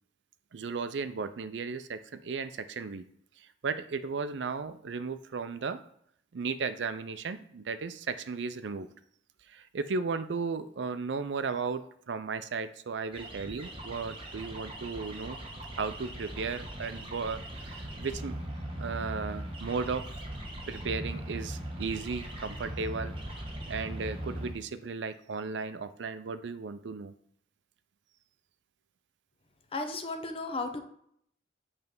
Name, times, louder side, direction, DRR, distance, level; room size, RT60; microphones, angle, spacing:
voice 1, 0.5-3.0 3.4-5.8 6.3-8.9 9.5-15.4 15.8-18.4 18.8-20.0 20.7-23.2 23.7-27.1, right 4 dB, 80° right, 12 dB, 0.5 m, -35 dB
sound 1, 13.1-24.5, right 1 dB, 30° right, 1.2 m, -40 dB
voice 2, 29.7-30.8, left 3 dB, 30° left, 5 dB, 0.8 m, -34 dB
8.1 x 3.3 x 5.3 m, 0.68 s
head